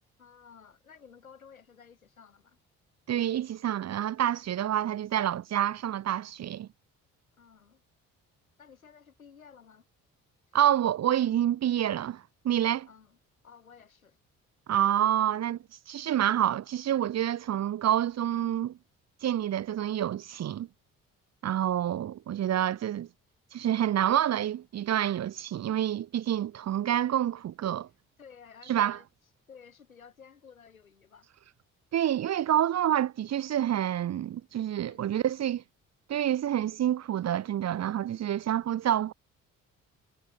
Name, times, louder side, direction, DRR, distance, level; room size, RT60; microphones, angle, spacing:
voice 1, 0.2-2.6 7.4-7.8 8.6-9.9 12.9-13.2 13.4-14.2 28.2-29.1 29.5-31.3 34.9-35.5, left 6 dB, 90° left, 6.8 m, -54 dB
voice 2, 3.1-6.7 10.5-12.9 14.7-15.6 15.9-18.8 19.2-20.7 21.4-23.1 23.5-27.9 28.7-29.0 31.9-35.6 36.1-39.1, right 11 dB, 40° right, 0.8 m, -28 dB
figure-of-eight pair, 45°, 40 cm